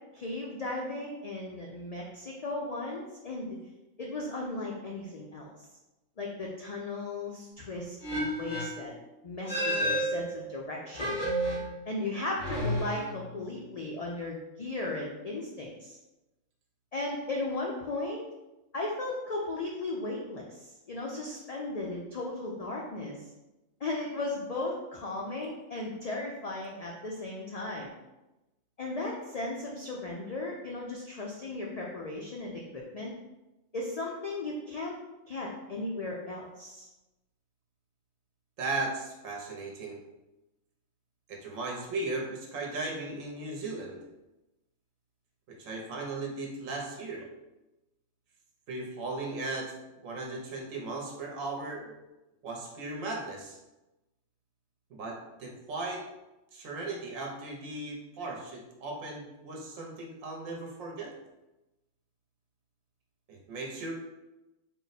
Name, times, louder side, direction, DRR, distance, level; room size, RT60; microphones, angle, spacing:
voice 1, 0.1-3.6 4.0-5.5 6.2-8.9 9.2-11.2 11.9-16.0 16.9-18.2 18.7-23.2 23.8-27.9 28.8-33.1 33.7-34.9 35.3-36.9, left 2 dB, 70° left, -2 dB, 0.3 m, -36 dB
sound 1, 8.0-8.9 9.5-10.5 10.9-11.9 12.4-13.4, equal, 30° left, 1.5 m, -31 dB
voice 2, 38.6-40.0 41.3-44.0 45.5-47.2 48.7-49.7 50.0-51.9 52.4-53.6 54.9-56.0 56.5-61.1 63.3-63.9, right 2 dB, 85° right, -1 dB, 1.2 m, -37 dB
4.1 x 2.1 x 4.0 m, 0.99 s
omnidirectional pair, 1.3 m